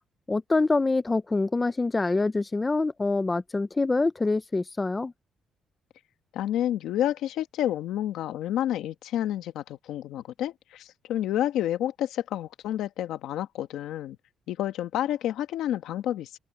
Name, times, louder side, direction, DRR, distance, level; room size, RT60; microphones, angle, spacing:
voice 1, 0.3-5.1, left 3 dB, 15° left, 0.4 m, -25 dB
voice 2, 6.3-14.2 14.5-16.3, left 12 dB, 90° left, 1.4 m, -29 dB
open air
cardioid pair, 175°, 0 cm